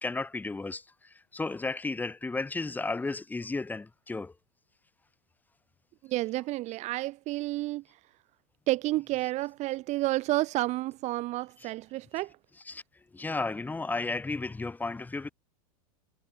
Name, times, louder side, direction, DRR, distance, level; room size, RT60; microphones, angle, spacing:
voice 1, 0.0-4.3 11.6-11.7 12.7-12.8 13.1-15.3, left 3 dB, 10° left, 2.5 m, -33 dB
voice 2, 6.0-7.8 8.7-12.3, right 18 dB, 40° right, 1.0 m, -30 dB
supercardioid pair, 125°, 19 cm